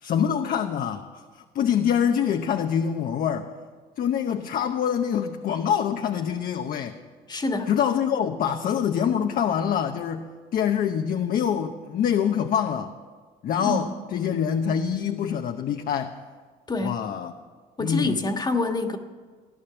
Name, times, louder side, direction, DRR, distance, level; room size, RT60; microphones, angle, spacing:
voice 1, 0.0-3.5 4.0-7.0 7.7-12.9 13.4-16.2 16.8-17.3 17.8-18.2, left 8 dB, 60° left, 5 dB, 0.9 m, -25 dB
voice 2, 7.3-7.7 13.6-13.8 16.7-17.0 17.8-19.0, left 2 dB, 25° left, 5 dB, 1.6 m, -26 dB
16.5 x 11.0 x 7.1 m, 1.5 s
cardioid pair, 110°, 17 cm